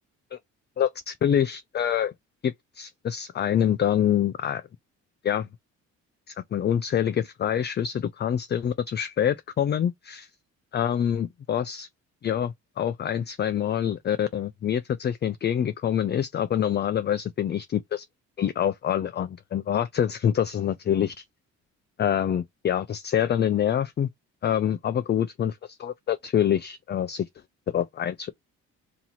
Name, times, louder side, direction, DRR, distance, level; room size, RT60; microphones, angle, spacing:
voice 1, 0.8-2.1 2.4-4.6 5.2-5.5 6.3-10.3 10.7-11.9 12.2-18.1 18.4-21.1 22.0-24.1 24.4-27.3 27.7-28.3, left 9 dB, 35° left, 0.4 m, -26 dB
2.9 x 2.8 x 4.0 m
cardioid pair, 90°, 30 cm